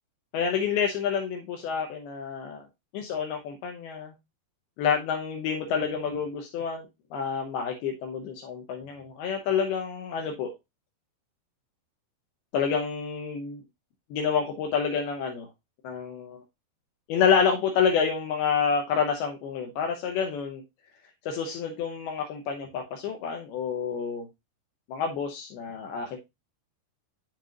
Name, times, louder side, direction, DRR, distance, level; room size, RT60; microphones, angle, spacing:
voice 1, 0.3-2.6 2.9-4.1 4.8-6.9 7.1-10.5 12.5-13.6 14.1-15.5 15.8-16.4 17.1-20.6 21.2-24.3 24.9-26.2, left 6 dB, 80° left, 2 dB, 2.8 m, -28 dB
7.6 x 7.4 x 2.5 m, 0.22 s
omnidirectional pair, 4.6 m